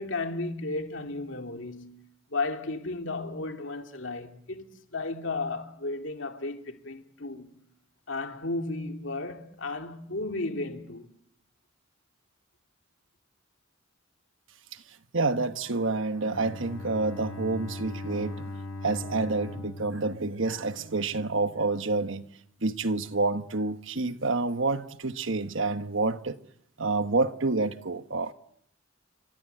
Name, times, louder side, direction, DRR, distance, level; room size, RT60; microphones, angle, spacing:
voice 1, 0.0-2.0 2.3-7.6 8.1-11.1, left 2 dB, 65° left, 2.5 m, -34 dB
voice 2, 15.1-18.5 18.8-22.3 22.6-26.4 26.8-28.3, right 3 dB, 65° right, 1.3 m, -28 dB
Bowed string instrument, 16.2-21.2, left 2 dB, 85° left, 6.5 m, -39 dB
29.0 x 26.0 x 7.9 m
head